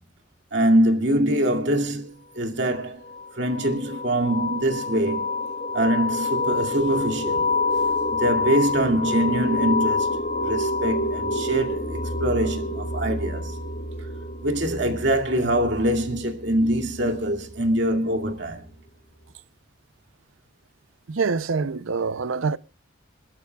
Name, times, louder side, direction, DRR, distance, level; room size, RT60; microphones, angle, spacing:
voice 1, 0.5-3.0 3.3-5.3 5.7-7.5 8.1-13.6 14.4-18.7, right 1 dB, 60° right, 2.4 m, -24 dB
sound 1, 3.1-17.5, left 2 dB, 35° left, 1.4 m, -27 dB
voice 2, 21.1-22.6, right 4 dB, 80° right, 0.6 m, -25 dB
26.0 x 12.0 x 2.3 m
head